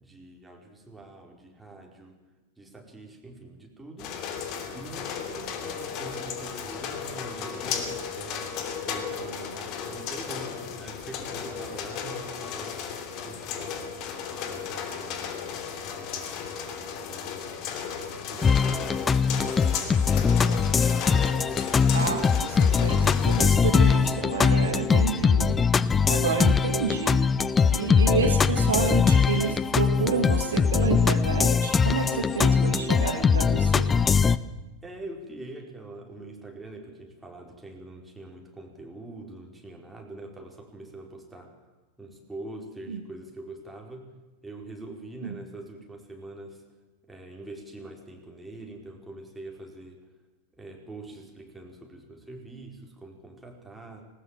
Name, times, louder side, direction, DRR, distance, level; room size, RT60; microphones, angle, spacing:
voice 1, 0.0-2.2 2.6-4.2 4.7-8.5 8.8-12.8 13.2-16.3 16.9-17.6 18.3-20.8 34.8-41.5 42.0-44.1 44.4-46.6 47.0-50.0 50.5-54.1, right 2 dB, 5° right, 0 dB, 4.6 m, -44 dB
sound 1, 4.0-23.5, left 7 dB, 40° left, 2.9 m, -35 dB
sound 2, 18.4-34.4, left 5 dB, 15° left, 0.7 m, -22 dB
voice 2, 21.9-25.6 26.1-27.2 27.7-33.9 42.9-43.0 45.2-45.4, right 5 dB, 65° right, 6 dB, 2.0 m, -29 dB
19.5 x 19.5 x 7.4 m, 1.1 s
figure-of-eight pair, 90°, 0 cm